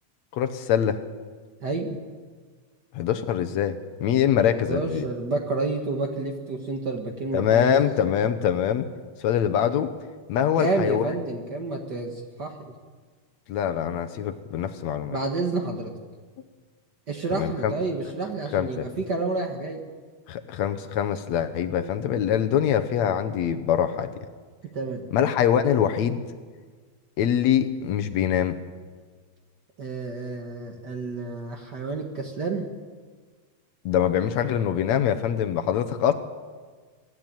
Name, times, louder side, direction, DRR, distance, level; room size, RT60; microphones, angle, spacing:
voice 1, 0.3-1.0 2.9-5.1 7.3-8.9 9.2-9.9 10.3-11.1 13.5-15.2 17.3-17.7 18.5-18.9 20.3-24.1 25.1-26.2 27.2-28.6 33.9-36.1, left 9 dB, 70° left, 8 dB, 2.1 m, -24 dB
voice 2, 1.6-2.0 4.5-7.8 10.6-12.7 15.1-15.9 17.1-19.8 24.6-25.1 29.8-32.7, right 3 dB, 45° right, 3 dB, 1.6 m, -29 dB
23.0 x 14.0 x 9.0 m, 1.5 s
omnidirectional pair, 3.4 m